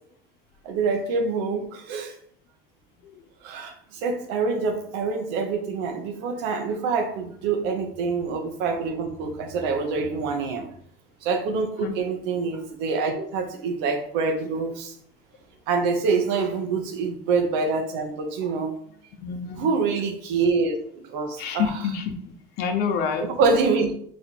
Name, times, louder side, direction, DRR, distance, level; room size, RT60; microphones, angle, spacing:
voice 1, 0.6-2.1 3.4-10.7 11.2-14.9 15.7-18.7 19.5-21.7 23.4-23.9, right 4 dB, 80° right, 5 dB, 0.9 m, -26 dB
voice 2, 19.2-19.7 21.4-22.1 22.6-23.3, left 6 dB, 70° left, 5 dB, 0.8 m, -27 dB
4.3 x 2.5 x 4.4 m, 0.63 s
supercardioid pair, 85°, 17 cm